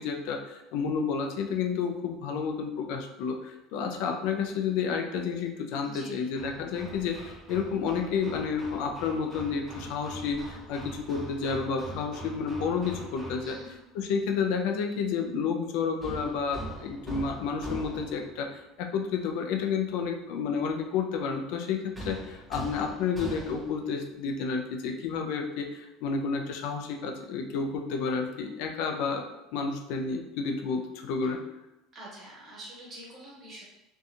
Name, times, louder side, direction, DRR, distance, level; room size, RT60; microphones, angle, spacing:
voice 1, 0.0-13.6 13.9-29.2 29.5-31.4, left 5 dB, 70° left, 3 dB, 0.3 m, -30 dB
voice 2, 5.8-6.2 13.4-13.8 31.2-31.3 31.9-33.6, right 1 dB, 30° right, -5 dB, 1.3 m, -46 dB
Hammer, 6.4-13.8 16.0-18.4 21.9-23.9, right 2 dB, 10° right, 0.7 m, -42 dB
2.7 x 2.2 x 2.5 m, 0.96 s
supercardioid pair, 115°, 0 cm